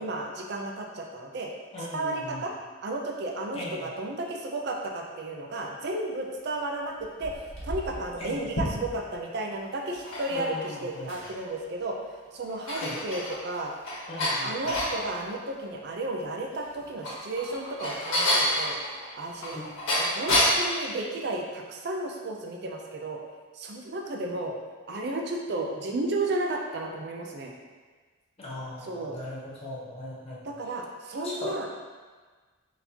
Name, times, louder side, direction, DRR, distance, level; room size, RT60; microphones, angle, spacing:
voice 1, 0.0-1.5 1.9-2.5 2.8-12.0 12.3-13.7 14.4-18.8 19.2-19.6 20.0-23.2 23.5-24.5 24.9-27.5 28.8-29.2 30.4-31.7, right 2 dB, 55° right, 1 dB, 0.4 m, -33 dB
voice 2, 1.7-2.4 3.5-3.8 8.2-8.4 10.3-11.1 12.7-13.0 14.1-14.5 19.5-19.6 28.4-30.4 31.2-31.5, left 1 dB, 30° left, -7 dB, 1.0 m, -38 dB
sound 1, 7.0-9.2 9.8-11.5 11.9-12.0 12.4-15.0 16.7-20.7, left 1 dB, 90° left, 1.4 m, -29 dB
4.2 x 4.1 x 2.8 m, 1.4 s
head